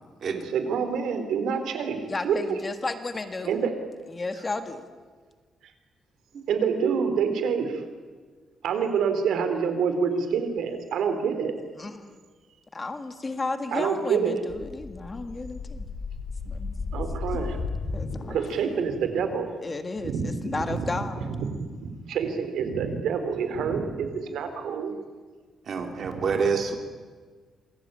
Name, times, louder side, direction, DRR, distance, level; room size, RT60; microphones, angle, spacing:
voice 1, 0.4-2.6 3.5-3.7 6.5-7.8 8.6-11.5 13.7-14.4 16.9-17.6 18.3-19.5 20.0-20.9 21.3-24.9 26.1-26.2, right 6 dB, 80° right, 8 dB, 3.9 m, -27 dB
voice 2, 2.1-3.6 4.1-4.9 11.8-12.1 12.7-15.9 16.4-16.7 17.9-18.3 19.6-21.3, left 3 dB, 20° left, 8 dB, 1.7 m, -33 dB
sound 1, 14.5-18.8, left 4 dB, 40° left, 3.0 m, -34 dB
voice 3, 25.7-26.8, right 5 dB, 45° right, 4 dB, 3.5 m, -27 dB
27.5 x 22.0 x 9.2 m, 1.5 s
cardioid pair, 165°, 0 cm